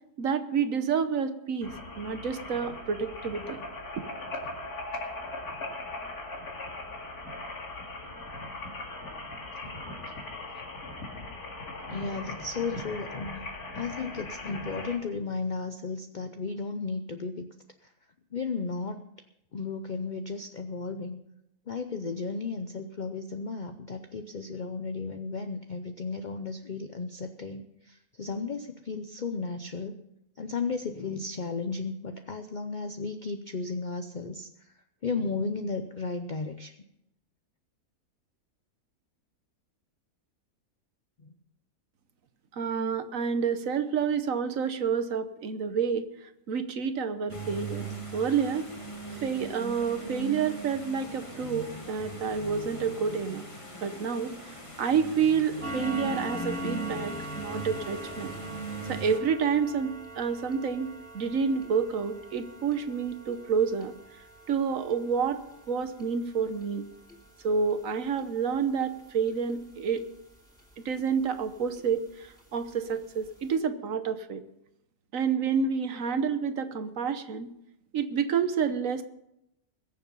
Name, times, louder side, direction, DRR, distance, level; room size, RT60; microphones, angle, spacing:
voice 1, 0.2-3.6 4.0-4.1 42.6-46.1 46.5-48.7 49.2-53.4 53.8-54.3 54.8-58.3 58.9-63.9 64.5-65.4 65.7-66.9 67.4-70.0 70.8-74.4 75.1-77.5 77.9-79.0, right 6 dB, 65° right, 10 dB, 1.3 m, -29 dB
sound 1, 1.6-15.0, left 2 dB, 75° left, 2.8 m, -39 dB
voice 2, 11.9-13.5 13.7-17.5 18.3-19.0 19.5-21.2 21.7-30.0 30.4-34.7 35.0-36.7 41.2-41.3, left 4 dB, 45° left, 7 dB, 0.6 m, -34 dB
sound 2, 47.3-59.2, right 2 dB, 20° left, 1.8 m, -39 dB
sound 3, 55.6-70.7 71.1-71.3 71.8-71.9 72.3-72.4 72.9-73.0 73.2-73.4, equal, ahead, 2.9 m, -43 dB
21.5 x 7.2 x 5.4 m, 0.82 s
omnidirectional pair, 1.6 m